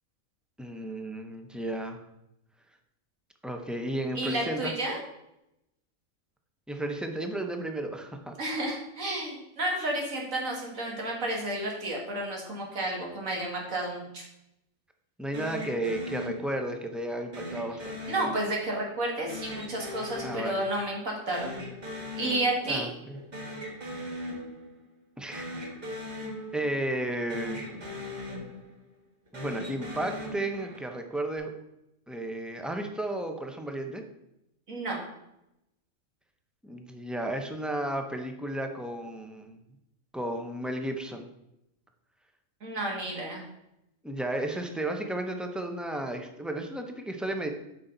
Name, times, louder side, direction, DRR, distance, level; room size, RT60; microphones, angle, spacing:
voice 1, 0.6-2.0 3.4-4.7 6.7-8.4 15.2-18.1 20.2-20.7 22.7-23.2 25.2-25.7 26.5-27.7 29.3-31.5 32.1-34.0 36.6-39.6 40.1-41.3 44.0-47.5, right 1 dB, ahead, 4 dB, 0.5 m, -33 dB
voice 2, 4.2-5.0 8.4-14.2 18.1-21.5 22.2-22.9 34.7-35.0 42.6-43.4, right 1 dB, 85° right, -1 dB, 2.4 m, -31 dB
sound 1, 15.3-16.9 17.3-18.9 19.3-21.1 21.3-22.9 23.1-24.9 25.3-27.0 27.3-28.9 29.3-31.0, left 1 dB, 35° right, 1.6 m, -39 dB
8.1 x 5.9 x 3.9 m, 0.85 s
omnidirectional pair, 1.4 m